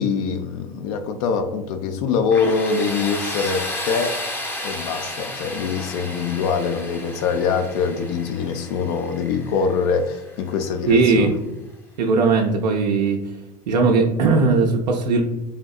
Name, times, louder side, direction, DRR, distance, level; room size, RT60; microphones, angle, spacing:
voice 1, 0.0-4.2 4.6-11.4, left 5 dB, 60° left, 7 dB, 0.4 m, -24 dB
Tools, 2.3-11.1, left 1 dB, 10° left, 0.5 m, -33 dB
voice 2, 10.9-11.3 12.0-13.2 13.7-15.2, right 4 dB, 85° right, 1 dB, 0.4 m, -18 dB
3.4 x 2.7 x 2.3 m, 0.97 s
hypercardioid pair, 85°, 21 cm